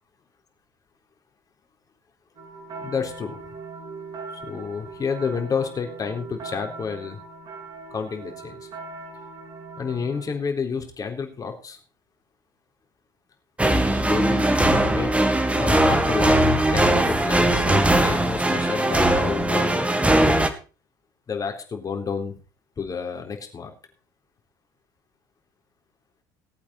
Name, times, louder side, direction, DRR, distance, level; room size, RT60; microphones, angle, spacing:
sound 1, 2.4-10.3, right 3 dB, 45° right, 7.0 m, -40 dB
voice 1, 2.8-3.4 4.4-7.2 7.9-8.7 9.8-11.8 14.0-15.1 15.5-20.4 21.3-22.3 22.8-23.7, left 5 dB, 35° left, 4 dB, 3.8 m, -30 dB
sound 2, 13.6-20.5, right 1 dB, 10° right, 2.2 m, -20 dB
19.0 x 8.6 x 4.4 m, 0.35 s
hypercardioid pair, 65°, 11 cm